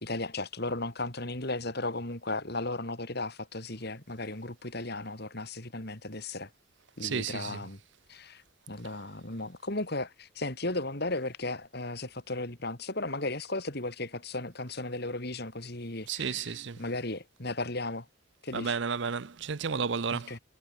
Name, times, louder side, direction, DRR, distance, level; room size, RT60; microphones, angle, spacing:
voice 1, 0.0-6.5 7.0-7.8 8.1-18.1 18.4-18.8 20.1-20.4, left 2 dB, 50° left, 3.2 m, -35 dB
voice 2, 7.0-7.6 16.1-16.8 18.5-20.4, right 5 dB, 60° right, 0.7 m, -32 dB
head